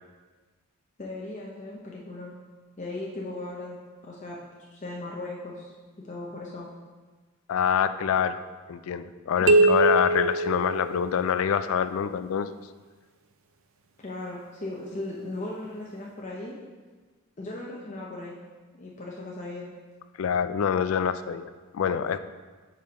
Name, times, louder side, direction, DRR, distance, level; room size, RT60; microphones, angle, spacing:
voice 1, 1.0-2.3 2.8-3.8 4.0-4.4 4.7-5.7 6.0-6.7 9.4-9.8 14.0-16.6 17.4-18.4 18.7-19.7, left 2 dB, 35° left, -4 dB, 0.7 m, -37 dB
voice 2, 7.5-8.4 8.7-12.5 20.2-22.2, left 7 dB, 70° left, 12 dB, 0.3 m, -26 dB
sound 1, 9.5-11.4, right 2 dB, 65° right, 0.5 m, -22 dB
5.5 x 4.3 x 5.1 m, 1.3 s
head